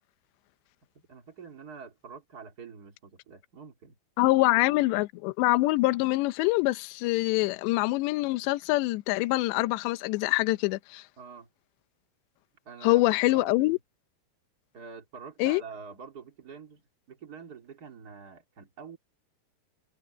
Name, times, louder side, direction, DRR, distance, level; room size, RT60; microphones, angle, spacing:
voice 1, 0.9-3.9 4.2-4.8 11.2-11.5 12.6-13.8 14.7-16.8 17.1-19.0, right 5 dB, 25° right, 2.6 m, -46 dB
voice 2, 4.2-11.0 12.8-13.8 15.4-15.6, left 20 dB, 80° left, 3.0 m, -25 dB
omnidirectional pair, 5.3 m